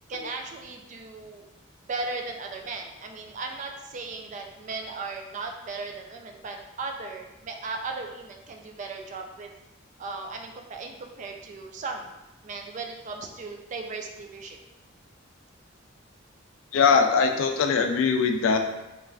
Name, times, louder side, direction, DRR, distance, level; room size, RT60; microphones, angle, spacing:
voice 1, 0.1-1.5 1.8-9.5 10.0-12.1 12.4-14.6, right 3 dB, 40° right, 3 dB, 0.3 m, -37 dB
voice 2, 16.7-18.6, left 5 dB, 85° left, 5 dB, 0.3 m, -21 dB
3.2 x 2.4 x 2.3 m, 0.98 s
head